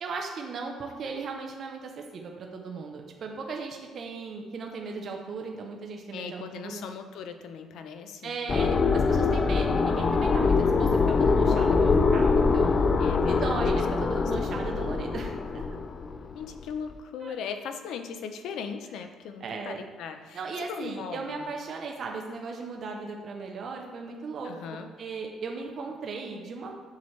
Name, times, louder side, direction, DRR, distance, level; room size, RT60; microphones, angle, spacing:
voice 1, 0.0-6.9 8.2-15.8 17.2-17.3 19.4-19.8 20.3-26.7, right 4 dB, 40° right, 1 dB, 0.6 m, -37 dB
voice 2, 6.1-8.3 13.0-13.6 14.1-14.7 16.3-20.4 20.7-21.5 24.4-24.9, left 6 dB, 65° left, 7 dB, 0.6 m, -39 dB
sound 1, 8.5-16.3, left 4 dB, 30° left, 0.3 m, -23 dB
7.2 x 5.8 x 3.2 m, 1.5 s
cardioid pair, 160°, 0 cm